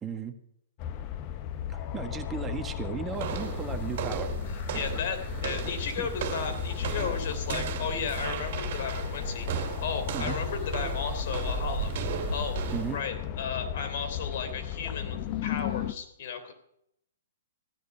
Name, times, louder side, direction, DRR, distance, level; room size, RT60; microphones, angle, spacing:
voice 1, 0.0-0.3 1.7-4.3 4.9-5.0 6.0-6.1 10.1-10.4 12.7-13.0, right 6 dB, 15° right, 7 dB, 1.6 m, -36 dB
sound 1, 0.8-15.9, left 10 dB, 40° left, 1.0 m, -35 dB
sound 2, 3.1-13.0, right 8 dB, 55° right, 2.4 m, -35 dB
voice 2, 4.5-12.0 12.3-12.6 12.9-16.5, left 6 dB, 55° left, 8 dB, 3.2 m, -35 dB
15.5 x 10.0 x 5.8 m, 0.74 s
hypercardioid pair, 125°, 0 cm